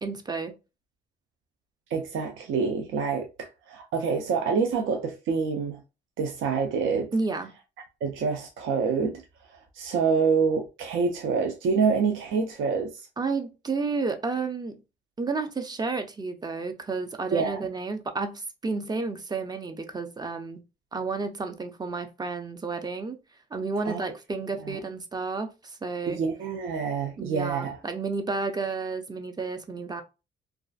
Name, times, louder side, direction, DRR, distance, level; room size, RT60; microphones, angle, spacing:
voice 1, 0.0-0.5 7.1-7.5 13.2-14.8 15.2-20.6 20.9-23.2 23.5-26.2 27.2-30.0, right 4 dB, 20° right, 0.4 m, -31 dB
voice 2, 1.9-5.8 6.2-7.1 8.0-9.2 9.5-13.0 17.3-17.7 23.8-24.0 24.6-24.8 26.1-27.8, right 5 dB, 75° right, 0.5 m, -27 dB
2.4 x 2.4 x 2.3 m
cardioid pair, 90°, 20 cm